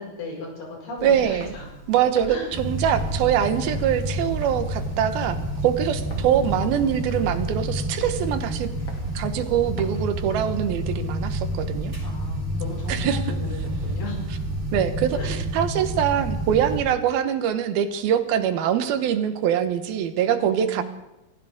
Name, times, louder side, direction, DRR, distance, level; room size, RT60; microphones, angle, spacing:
voice 1, 0.0-1.7 2.3-2.5 6.2-6.8 12.0-14.4 15.1-15.3 20.2-20.8, left 2 dB, 70° left, -2 dB, 7.2 m, -36 dB
Walk footsteps, 1.0-10.0, left 2 dB, 35° left, 3.0 m, -43 dB
voice 2, 1.0-1.5 1.9-5.4 5.6-8.7 9.1-11.9 12.9-13.2 14.7-20.8, right 9 dB, 90° right, 9 dB, 3.1 m, -23 dB
sound 1, 2.5-16.8, right 1 dB, 15° right, 5.3 m, -29 dB
24.5 x 15.5 x 3.7 m, 0.95 s
omnidirectional pair, 4.2 m